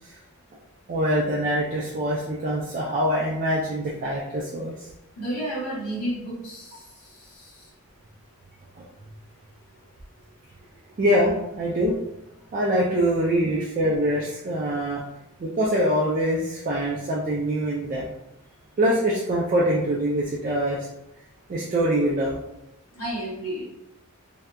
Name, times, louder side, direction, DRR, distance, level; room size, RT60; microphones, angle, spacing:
voice 1, 0.9-4.9 8.8-8.9 11.0-12.0 12.5-15.0 15.4-18.1 18.8-20.9 21.5-22.4, equal, 35° right, -4 dB, 0.3 m, -24 dB
voice 2, 5.2-7.7 21.6-21.7 22.9-23.6, right 1 dB, 70° left, -5 dB, 1.0 m, -32 dB
2.7 x 2.2 x 2.2 m, 0.84 s
head